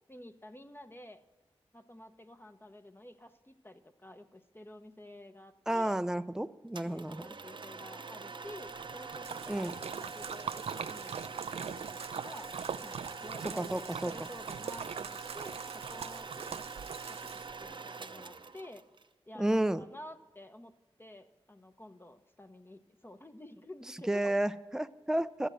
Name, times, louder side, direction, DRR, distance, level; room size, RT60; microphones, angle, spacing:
voice 1, 0.1-1.2 1.7-6.0 6.8-12.5 12.8-16.6 17.1-18.8 19.3-20.7 21.0-24.4, left 1 dB, 20° left, 8 dB, 0.9 m, -51 dB
voice 2, 5.7-7.2 9.5-9.7 13.6-14.1 19.4-19.8 24.1-25.5, right 1 dB, 5° right, 12 dB, 0.5 m, -31 dB
sound 1, 6.7-19.1, right 4 dB, 50° right, 0.8 m, -45 dB
Splash splatter, 8.6-17.7, right 7 dB, 75° right, 0.4 m, -42 dB
13.0 x 7.9 x 7.7 m, 1.2 s
cardioid pair, 45°, 11 cm